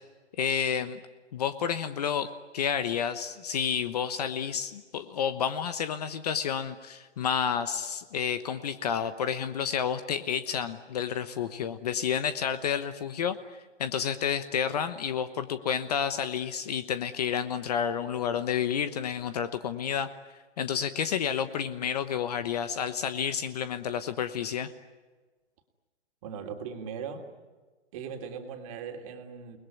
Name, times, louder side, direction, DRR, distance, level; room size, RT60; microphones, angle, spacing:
voice 1, 0.4-1.0 1.3-20.1 20.6-24.7, left 8 dB, 35° left, 11 dB, 1.1 m, -30 dB
voice 2, 26.2-27.3 27.9-29.6, right 6 dB, 30° right, 4 dB, 3.0 m, -39 dB
29.5 x 20.5 x 9.4 m, 1.3 s
hypercardioid pair, 160°, 36 cm